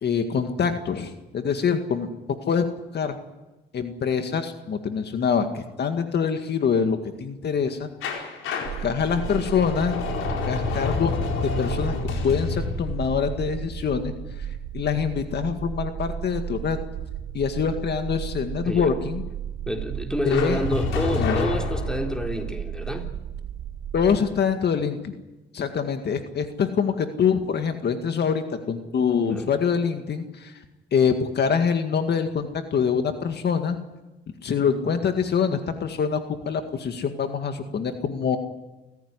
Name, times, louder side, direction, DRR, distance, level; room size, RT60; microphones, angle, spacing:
voice 1, 0.0-2.1 2.5-2.7 2.9-3.2 3.7-8.2 8.8-10.0 10.5-11.2 11.6-11.9 12.2-14.1 14.7-16.8 17.3-19.2 20.3-20.6 21.2-21.4 23.9-25.1 25.5-30.5 30.9-33.8 34.4-36.2 36.5-38.4, left 6 dB, 55° left, 7 dB, 2.0 m, -25 dB
sound 1, 8.0-14.8 20.3-22.5, left 5 dB, 90° left, 4.7 m, -29 dB
sound 2, 8.6-24.2, right 10 dB, 75° right, 3.5 m, -34 dB
voice 2, 18.6-19.0 19.7-23.1 29.3-29.5, equal, 5° left, 3 dB, 3.7 m, -28 dB
29.0 x 15.0 x 9.8 m, 1.1 s
cardioid pair, 90°, 20 cm